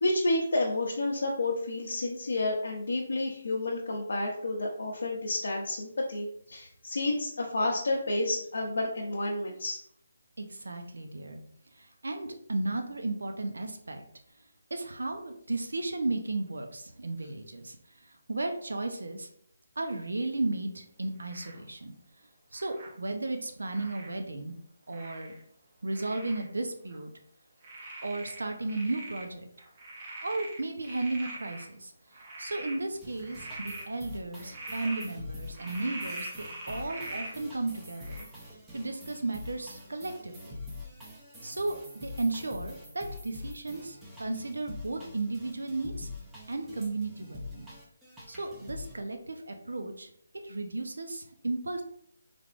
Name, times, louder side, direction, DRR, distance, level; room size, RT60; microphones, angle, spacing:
voice 1, 0.0-9.8, left 2 dB, 75° left, -2 dB, 0.7 m, -30 dB
voice 2, 10.4-11.4 11.8-14.0 14.7-17.8 18.0-19.3 19.8-21.9 22.5-24.5 24.9-25.3 25.8-27.1 28.0-29.5 30.2-31.9 32.4-38.3 38.7-40.6 41.4-46.1 46.5-47.7 48.3-50.1 50.4-51.8, right 2 dB, 85° right, 5 dB, 0.7 m, -34 dB
Frog, 21.3-21.6 22.5-22.9 23.7-24.1 24.9-25.4 25.9-26.4 26.9-27.0 27.6-29.3 29.6-31.6 32.1-32.8 33.2-33.8 34.4-35.1 35.5-37.3 38.0-38.2, right 2 dB, 30° right, 1.0 m, -42 dB
sound 1, 32.9-48.9, left 2 dB, 10° right, 0.6 m, -45 dB
3.5 x 3.2 x 2.5 m, 0.67 s
hypercardioid pair, 165°, 0 cm